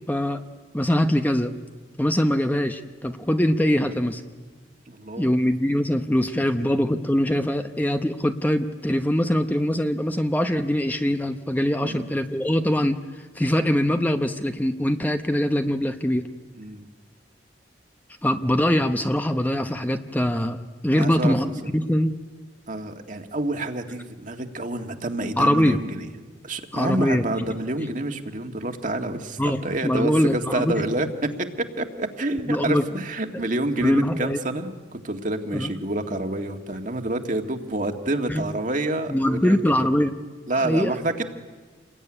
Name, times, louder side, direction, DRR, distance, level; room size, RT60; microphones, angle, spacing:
voice 1, 0.1-0.4 0.7-1.5 2.0-4.2 5.2-13.0 13.3-16.3 18.2-20.6 20.8-22.1 25.4-25.8 26.7-27.2 29.4-30.8 32.5-32.8 33.8-34.4 35.5-35.7 38.3-38.4 39.1-40.1 40.5-40.9, equal, 10° left, 7 dB, 0.8 m, -23 dB
voice 2, 4.9-5.3 11.8-12.1 16.6-16.9 20.9-21.3 22.7-26.1 26.4-31.1 31.4-34.8 35.0-39.9 40.5-41.2, right 2 dB, 45° right, 5 dB, 1.9 m, -28 dB
28.0 x 21.0 x 9.9 m, 1.4 s
head